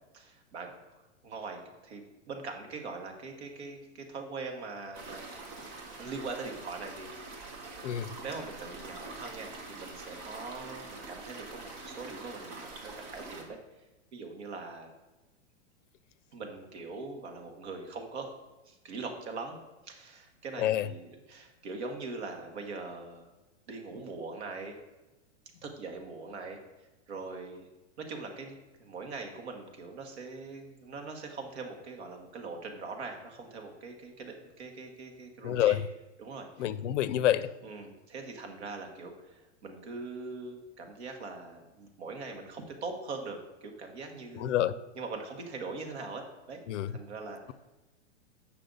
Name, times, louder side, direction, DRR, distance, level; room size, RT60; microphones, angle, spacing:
voice 1, 0.1-0.7 1.2-5.2 6.0-13.6 14.1-14.9 16.3-18.3 18.7-19.6 19.8-23.3 23.7-24.8 25.6-26.6 27.1-27.7 28.0-35.8 36.2-36.5 37.6-46.6 46.9-47.5, right 3 dB, 65° right, 3 dB, 1.5 m, -42 dB
sound 1, 4.9-13.4, right 3 dB, 35° right, 1.2 m, -45 dB
voice 2, 7.8-8.2 20.6-20.9 35.4-35.9 36.6-37.5 44.3-44.7 46.7-47.0, left 12 dB, 80° left, 16 dB, 0.5 m, -28 dB
8.2 x 5.6 x 3.9 m, 1.1 s
supercardioid pair, 170°, 36 cm